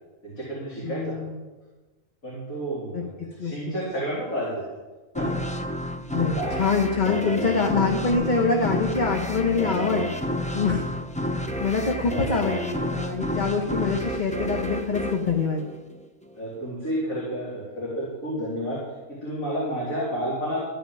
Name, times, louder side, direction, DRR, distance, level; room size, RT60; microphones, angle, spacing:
voice 1, 0.2-1.1 2.2-4.6 5.1-5.4 6.1-6.7 16.4-18.8 19.1-20.6, equal, 70° left, -8 dB, 4.2 m, -30 dB
voice 2, 0.8-1.4 2.9-3.0 3.4-3.7 6.1-10.1 10.5-10.8 11.6-15.6, left 4 dB, 35° left, 1 dB, 1.2 m, -25 dB
sound 1, 5.2-16.3, equal, 5° left, 0.6 m, -31 dB
Bass guitar, 8.1-14.2, left 5 dB, 40° right, 1.8 m, -40 dB
14.0 x 5.9 x 9.3 m, 1.2 s
omnidirectional pair, 1.5 m